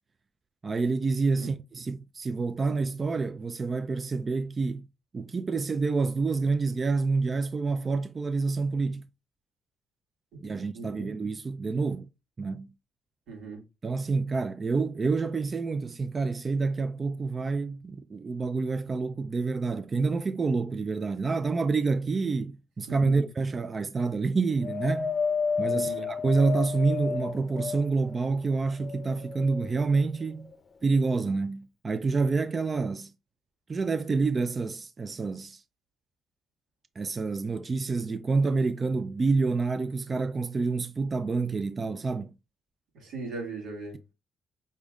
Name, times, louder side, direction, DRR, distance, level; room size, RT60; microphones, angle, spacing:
voice 1, 0.6-4.9 5.1-9.0 10.4-12.1 12.4-12.7 13.8-25.2 25.6-30.5 30.8-33.1 33.7-35.6 37.0-42.3, right 4 dB, 35° right, 0.3 m, -28 dB
voice 2, 10.7-11.1 13.3-13.6 22.9-23.3 25.7-26.1 42.9-44.0, right 3 dB, 90° right, 1.9 m, -39 dB
Wind, 24.6-28.1 28.7-29.7 30.5-30.6, left 5 dB, 45° left, 0.5 m, -31 dB
5.3 x 3.4 x 2.4 m
cardioid pair, 90°, 0 cm